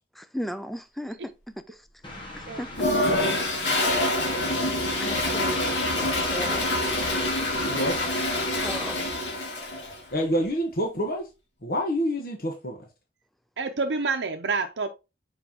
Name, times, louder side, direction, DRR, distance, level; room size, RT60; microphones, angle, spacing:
voice 1, 0.2-1.3 1.7-1.8 2.4-2.9 5.0-5.7 6.0-7.0 8.6-9.1, equal, ahead, 0.4 m, -36 dB
Train, 2.0-9.1, left 2 dB, 30° left, 1.5 m, -37 dB
Toilet flush, 2.7-10.0, left 1 dB, 90° left, 2.3 m, -26 dB
voice 2, 7.6-8.1 10.1-11.3 11.6-12.9, equal, 55° left, 1.2 m, -27 dB
voice 3, 13.6-14.9, right 4 dB, 85° right, 0.7 m, -29 dB
7.3 x 4.6 x 2.9 m
head